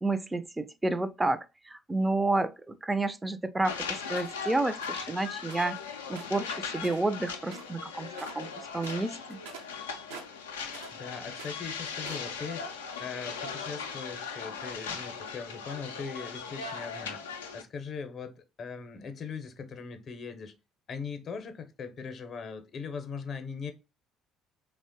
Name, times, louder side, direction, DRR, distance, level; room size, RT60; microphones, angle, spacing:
voice 1, 0.0-5.8 6.1-9.4, right 2 dB, 15° right, 0.3 m, -30 dB
sound 1, 3.6-17.6, left 6 dB, 90° left, 0.3 m, -39 dB
sound 2, 4.1-4.4 4.8-5.0 5.5-5.8 6.1-7.2 7.5-7.8 8.1-8.5 8.8-11.0 11.3-12.3, right 5 dB, 80° right, 0.5 m, -47 dB
voice 2, 10.9-12.7 13.0-17.3 17.5-20.5 20.9-23.7, left 5 dB, 50° left, 0.6 m, -40 dB
3.0 x 2.1 x 2.7 m
hypercardioid pair, 55°, 0 cm